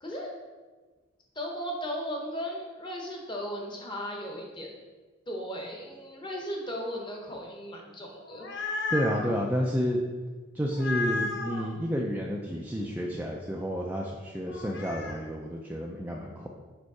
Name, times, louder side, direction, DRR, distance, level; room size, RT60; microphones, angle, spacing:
voice 1, 0.0-0.3 1.3-4.7 5.3-8.5, equal, 20° left, 0 dB, 0.9 m, -36 dB
sound 1, 8.1-9.3 10.7-11.7 14.5-15.2, left 3 dB, 55° left, 0.7 m, -33 dB
voice 2, 8.9-10.0 10.5-16.5, equal, 10° right, -1 dB, 0.3 m, -30 dB
5.1 x 4.6 x 4.7 m, 1.3 s
head